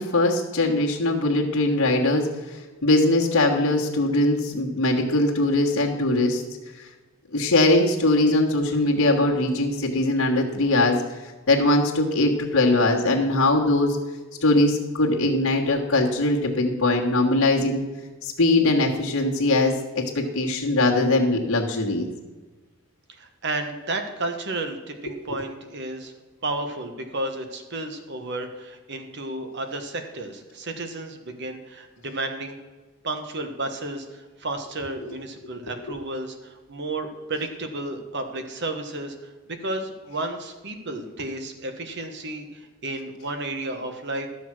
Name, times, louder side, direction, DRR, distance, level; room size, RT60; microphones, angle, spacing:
voice 1, 0.0-2.3 2.8-6.4 6.8-6.9 7.3-11.0 11.5-14.0 14.4-17.8 18.2-22.1 35.8-35.9, left 2 dB, 75° left, -6 dB, 1.6 m, -21 dB
voice 2, 23.1-26.1 26.4-32.6 33.0-44.3, right 2 dB, 55° right, 6 dB, 1.4 m, -32 dB
12.5 x 7.1 x 6.2 m, 1.2 s
head